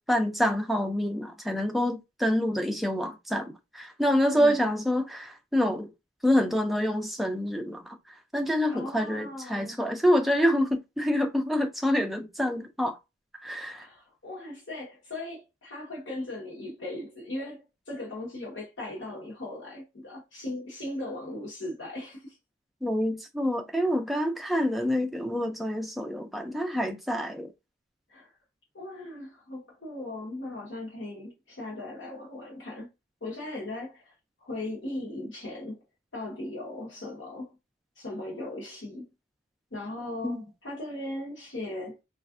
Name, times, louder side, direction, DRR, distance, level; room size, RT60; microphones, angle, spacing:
voice 1, 0.0-5.9 6.2-8.0 8.3-13.0 13.4-13.9 22.8-27.5 40.2-40.4, equal, ahead, 0.3 m, -27 dB
voice 2, 4.3-4.7 8.6-9.8 13.7-22.4 28.1-28.3 28.7-32.9 33.2-35.8 36.1-37.5 38.0-39.1 39.7-42.0, left 1 dB, 70° left, 0.9 m, -38 dB
3.3 x 2.4 x 2.4 m
head